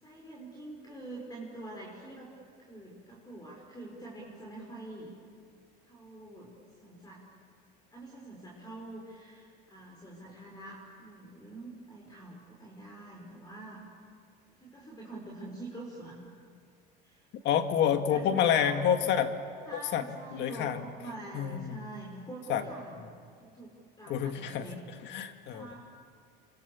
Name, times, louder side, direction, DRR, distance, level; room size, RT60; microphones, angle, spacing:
voice 1, 0.0-2.3 2.6-5.1 5.8-6.5 6.8-7.2 7.9-13.8 14.6-16.2 17.0-18.8 19.6-23.1 23.4-24.8 25.5-25.8, right 2 dB, 20° left, -2 dB, 5.6 m, -45 dB
voice 2, 17.4-19.3 19.7-20.1 20.3-20.8 21.3-21.8 22.5-22.6 23.0-23.1 24.1-24.7 25.0-25.7, left 9 dB, 60° left, 7 dB, 2.0 m, -28 dB
29.0 x 24.5 x 7.2 m, 2.2 s
supercardioid pair, 105°, 21 cm